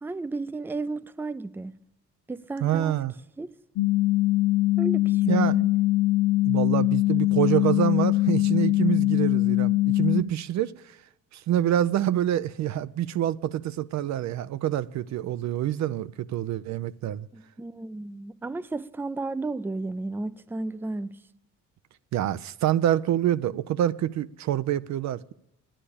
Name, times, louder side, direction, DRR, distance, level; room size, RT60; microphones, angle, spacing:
voice 1, 0.0-1.7 2.3-3.0 3.4-3.5 4.8-5.7 17.3-21.2, right 3 dB, 5° right, 0.4 m, -33 dB
voice 2, 2.6-3.1 5.2-5.6 6.4-10.7 11.3-17.3 22.1-25.3, right 11 dB, 65° right, 0.5 m, -26 dB
sound 1, 3.8-10.2, left 17 dB, 90° left, 0.5 m, -22 dB
10.0 x 9.9 x 8.5 m
cardioid pair, 90°, 30 cm